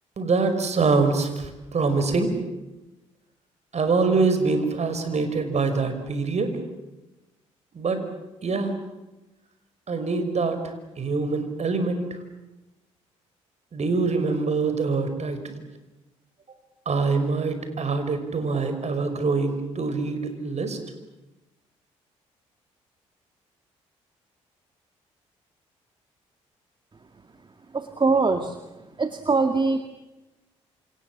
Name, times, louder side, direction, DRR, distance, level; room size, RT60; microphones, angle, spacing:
voice 1, 0.2-2.3 3.7-6.6 7.7-8.0 8.4-8.7 9.9-12.2 13.7-15.6 16.9-20.8, right 4 dB, 45° right, 8 dB, 5.6 m, -24 dB
voice 2, 27.7-28.6 29.0-29.9, right 4 dB, 30° right, 7 dB, 2.2 m, -22 dB
28.5 x 27.5 x 7.4 m, 1.0 s
hypercardioid pair, 45°, 15 cm